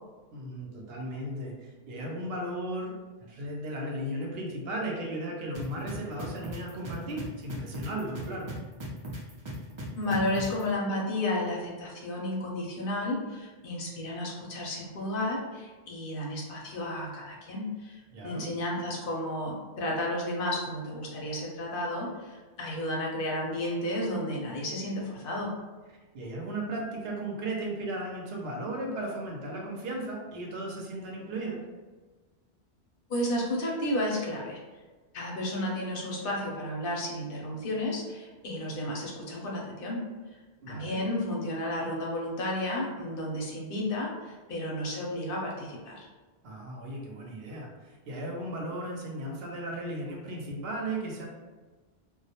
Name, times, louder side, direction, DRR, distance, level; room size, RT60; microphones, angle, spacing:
voice 1, 0.3-8.5 18.1-18.4 26.1-31.6 40.6-41.0 46.4-51.3, right 1 dB, 70° right, -1 dB, 0.8 m, -36 dB
sound 1, 5.5-10.6, right 1 dB, 45° right, 0.4 m, -38 dB
voice 2, 10.0-25.5 33.1-34.6 35.1-40.0 40.7-46.1, left 1 dB, 65° left, -2 dB, 0.7 m, -32 dB
2.2 x 2.0 x 2.7 m, 1.3 s
omnidirectional pair, 1.1 m